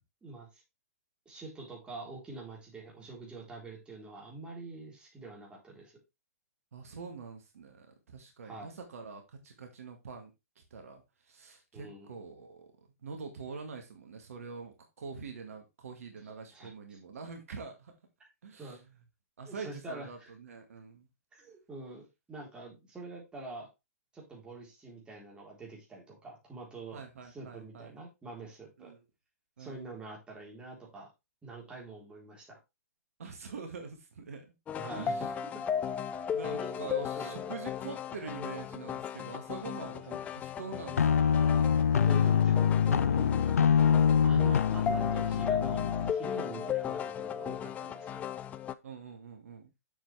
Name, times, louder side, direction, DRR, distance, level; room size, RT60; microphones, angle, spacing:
voice 1, 0.2-0.6 1.3-5.9 8.4-8.7 11.7-12.1 16.5-17.0 18.6-18.8 19.5-20.3 21.3-23.7 24.1-28.9 29.6-31.1 31.4-32.6 34.7-35.3 36.6-36.9 37.2-37.5 42.0-43.8 44.2-48.2, right 2 dB, 10° right, -3 dB, 3.9 m, -46 dB
voice 2, 6.7-10.3 10.7-12.7 13.0-17.9 18.4-18.8 19.4-21.1 26.9-28.0 28.8-29.0 29.6-29.9 33.2-34.5 35.0-35.3 36.3-41.2 46.5-46.7 48.8-49.7, right 5 dB, 65° right, 4 dB, 2.0 m, -45 dB
sound 1, 34.7-48.7, left 8 dB, 15° left, 0.4 m, -36 dB
sound 2, 41.0-46.1, left 7 dB, 70° left, 0.5 m, -25 dB
7.3 x 6.9 x 3.4 m, 0.24 s
figure-of-eight pair, 120°, 8 cm